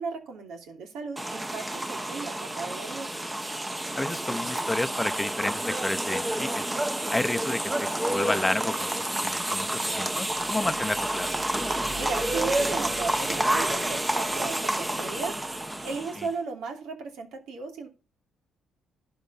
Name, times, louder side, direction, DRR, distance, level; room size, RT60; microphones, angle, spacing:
voice 1, 0.0-3.1 11.7-15.3 15.8-17.9, right 4 dB, 85° right, 2.9 m, -36 dB
sound 1, 1.2-16.3, right 1 dB, 15° right, 1.0 m, -29 dB
voice 2, 3.9-6.6 7.1-8.9 9.2-11.3, left 2 dB, 10° left, 0.8 m, -31 dB
sound 2, 9.4-16.1, right 3 dB, 45° right, 2.6 m, -44 dB
11.5 x 4.7 x 5.7 m
cardioid pair, 90°, 0 cm